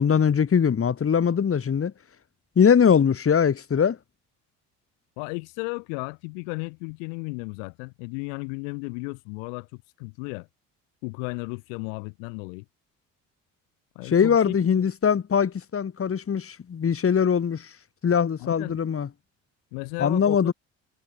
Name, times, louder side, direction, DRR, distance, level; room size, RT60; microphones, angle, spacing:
voice 1, 0.0-1.9 2.6-4.0 14.1-17.7 18.0-19.1 20.0-20.5, left 7 dB, 35° left, 3.2 m, -21 dB
voice 2, 5.2-10.5 11.0-12.6 14.0-14.9 18.4-18.8 19.7-20.5, left 40 dB or more, 80° left, 2.3 m, -34 dB
hypercardioid pair, 70°, 37 cm